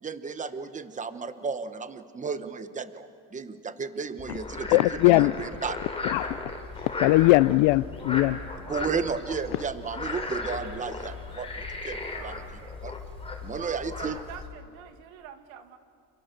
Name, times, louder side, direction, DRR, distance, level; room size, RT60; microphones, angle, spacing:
voice 1, 0.0-5.8 8.7-12.4 12.8-13.0 13.4-14.2, right 5 dB, 15° right, 1.0 m, -33 dB
Frog, 4.2-14.5, left 3 dB, 10° left, 4.1 m, -36 dB
voice 2, 4.7-5.3 6.0-6.4 7.0-8.4, left 20 dB, 70° left, 0.6 m, -20 dB
sound 1, 6.4-12.8, right 2 dB, 40° right, 7.6 m, -57 dB
voice 3, 12.0-12.8 13.5-15.8, right 9 dB, 80° right, 2.4 m, -45 dB
29.5 x 28.0 x 6.6 m
cardioid pair, 135°, 46 cm